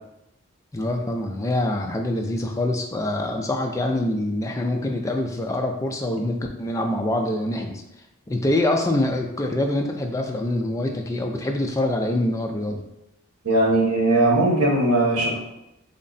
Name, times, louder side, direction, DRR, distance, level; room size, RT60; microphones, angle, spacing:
voice 1, 0.7-7.8 8.3-12.8, left 1 dB, 15° left, 2 dB, 0.3 m, -25 dB
voice 2, 13.4-15.4, right 2 dB, 75° right, -2 dB, 1.1 m, -19 dB
3.5 x 2.2 x 3.9 m, 0.88 s
head